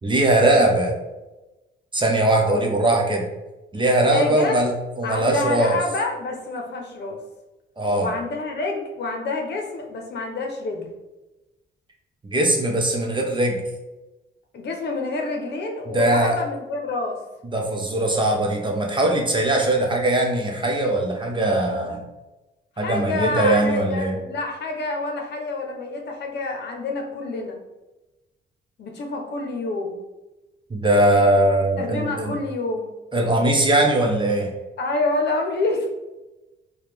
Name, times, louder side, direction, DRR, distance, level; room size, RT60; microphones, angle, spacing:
voice 1, 0.0-0.9 1.9-3.2 3.7-5.8 7.8-8.1 12.2-13.6 15.9-16.3 17.4-22.0 22.8-24.2 30.7-32.4 33.1-34.5, right 1 dB, 25° right, 1 dB, 0.8 m, -20 dB
voice 2, 4.1-4.6 5.0-7.2 8.0-10.9 14.5-17.2 19.5-19.6 22.8-27.6 28.8-30.0 31.8-33.0 34.8-35.9, left 3 dB, 60° left, 2 dB, 0.8 m, -28 dB
4.1 x 2.3 x 3.4 m, 1.1 s
cardioid pair, 90°, 20 cm